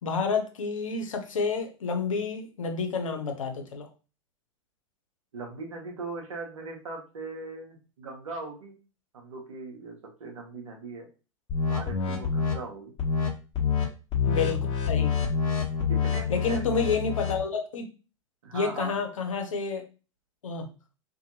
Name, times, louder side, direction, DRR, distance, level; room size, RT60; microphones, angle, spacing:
voice 1, 0.0-3.9 14.2-15.1 16.3-17.9 18.5-19.8 20.4-20.7, left 5 dB, 80° left, 5 dB, 0.8 m, -29 dB
voice 2, 5.3-8.8 9.1-11.1 11.7-12.9 15.9-16.9 18.4-19.0, right 3 dB, 75° right, 1 dB, 0.9 m, -39 dB
sound 1, 11.5-12.5 13.0-13.3 13.5-13.8 14.1-17.4, left 6 dB, 30° left, 1.1 m, -27 dB
2.6 x 2.6 x 2.7 m, 0.33 s
hypercardioid pair, 95°, 17 cm